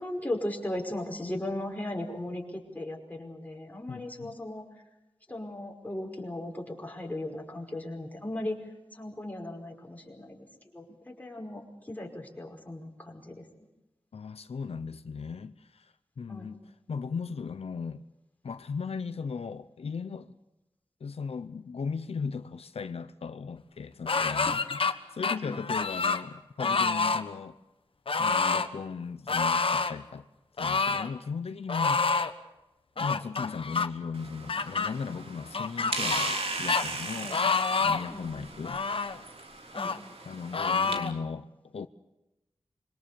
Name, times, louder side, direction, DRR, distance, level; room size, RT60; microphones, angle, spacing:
voice 1, 0.0-4.6 5.3-8.6 8.9-10.4 10.7-13.5 16.3-16.5 24.1-24.7 25.4-25.6 33.0-33.2 37.2-37.4 38.1-38.5 39.7-39.9 40.9-41.2, left 1 dB, 15° left, 5.2 m, -37 dB
voice 2, 3.9-4.4 14.1-18.0 18.4-20.3 21.0-27.6 28.2-30.3 30.6-32.0 33.0-37.4 37.8-38.8 40.3-41.9, left 5 dB, 85° left, 0.8 m, -37 dB
sound 1, 24.1-24.9 25.2-26.2 26.6-27.2 28.1-28.7 29.3-29.9 30.6-31.1 31.7-32.3 33.0-33.9 34.5-34.9 35.5-36.4 36.7-36.8 37.3-38.1 38.6-39.2 39.7-40.0 40.5-41.1, left 4 dB, 65° left, 1.3 m, -27 dB
sound 2, 34.1-41.0, right 3 dB, 75° right, 3.4 m, -37 dB
26.0 x 23.5 x 7.0 m
wide cardioid pair, 85°, 10 cm